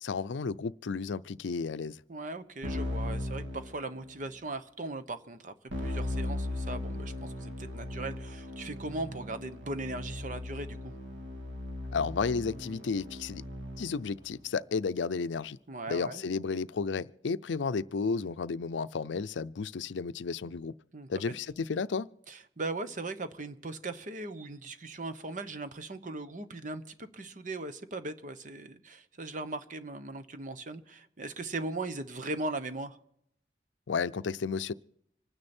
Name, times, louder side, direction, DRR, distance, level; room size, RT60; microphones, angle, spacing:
voice 1, 0.0-2.0 11.9-13.4 13.8-15.6 15.9-20.7 21.1-22.1 33.9-34.7, left 5 dB, 85° left, 0.5 m, -32 dB
voice 2, 2.1-5.5 5.8-10.9 15.7-16.2 20.9-21.3 22.3-33.0, right 2 dB, 45° right, 1.0 m, -39 dB
Keyboard (musical), 2.6-4.3 5.7-14.1, left 1 dB, 85° right, 2.0 m, -38 dB
26.0 x 9.8 x 4.4 m
head